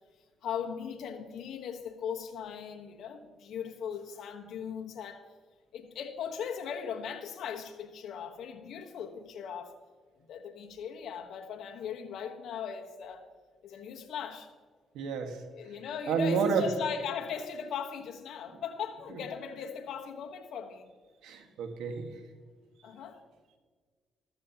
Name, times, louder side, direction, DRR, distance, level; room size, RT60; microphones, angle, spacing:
voice 1, 0.4-5.2 5.7-9.8 10.3-13.3 13.6-14.5 15.5-20.9 22.8-23.2, left 7 dB, 75° left, 3 dB, 1.2 m, -39 dB
voice 2, 14.9-15.4 16.1-16.7 21.2-22.1, right 5 dB, 90° right, 5 dB, 1.5 m, -29 dB
13.5 x 13.5 x 2.9 m, 1.5 s
cardioid pair, 90°, 0 cm